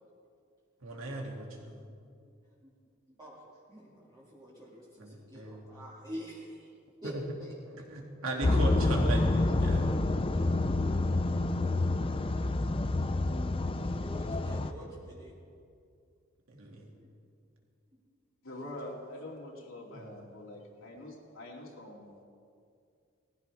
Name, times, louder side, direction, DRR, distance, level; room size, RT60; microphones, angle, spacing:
voice 1, 0.8-1.8 5.0-5.7 7.0-7.2 7.7-9.9 16.5-16.9 19.9-20.2, right 2 dB, 80° right, -1 dB, 2.6 m, -38 dB
voice 2, 3.7-6.7 7.0-7.1 7.4-7.5 13.8-15.4 16.9-17.1, equal, 20° right, -8 dB, 2.1 m, -47 dB
sound 1, 8.4-14.7, left 2 dB, 25° left, 0.5 m, -28 dB
voice 3, 18.4-22.1, left 1 dB, 80° left, -3 dB, 2.6 m, -45 dB
19.5 x 15.5 x 3.5 m, 2.4 s
head